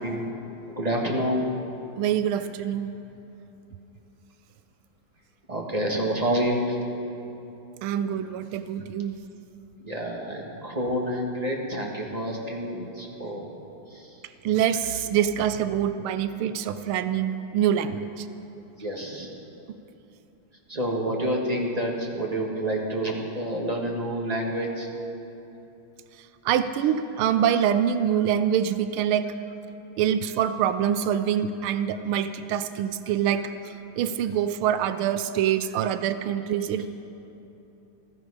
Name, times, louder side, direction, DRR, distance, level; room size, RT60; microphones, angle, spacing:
voice 1, 0.8-1.5 2.3-2.5 5.5-6.8 9.8-13.5 13.9-14.2 18.8-19.3 20.7-24.9, right 1 dB, 20° right, -1 dB, 1.3 m, -28 dB
voice 2, 2.0-3.0 7.8-9.1 14.4-18.3 26.4-29.3 30.0-33.5 34.0-36.9, right 9 dB, 90° right, 11 dB, 1.5 m, -25 dB
15.5 x 13.5 x 4.9 m, 3.0 s
omnidirectional pair, 2.3 m